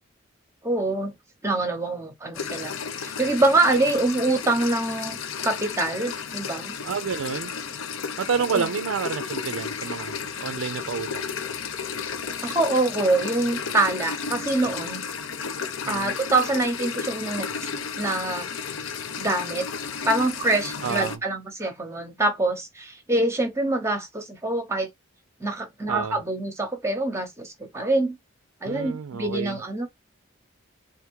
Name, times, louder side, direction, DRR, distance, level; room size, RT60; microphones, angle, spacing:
voice 1, 0.6-1.1 1.4-2.7 3.0-5.2 5.4-6.7 8.5-8.7 12.4-15.0 15.9-17.5 18.0-18.5 19.2-19.7 20.0-24.9 25.4-28.2 28.6-29.9, right 2 dB, 15° right, 0.7 m, -25 dB
sound 1, 2.3-21.2, left 6 dB, 80° left, 0.6 m, -33 dB
voice 2, 6.8-7.5 8.2-11.3 15.8-16.2 20.8-21.2 25.9-26.2 28.6-29.6, right 6 dB, 90° right, 0.4 m, -29 dB
3.5 x 2.5 x 4.5 m
head